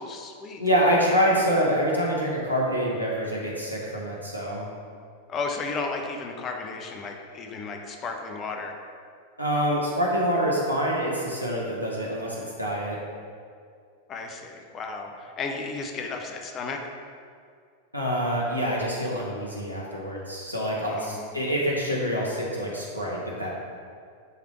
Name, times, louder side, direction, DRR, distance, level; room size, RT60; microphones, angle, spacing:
voice 1, 0.0-0.6 5.3-8.8 14.1-16.8 20.9-21.3, left 4 dB, 30° left, 3 dB, 0.7 m, -34 dB
voice 2, 0.6-4.7 9.4-13.0 17.9-23.5, equal, 90° right, -4 dB, 1.1 m, -26 dB
9.2 x 3.4 x 3.1 m, 2.2 s
figure-of-eight pair, 90°, 0 cm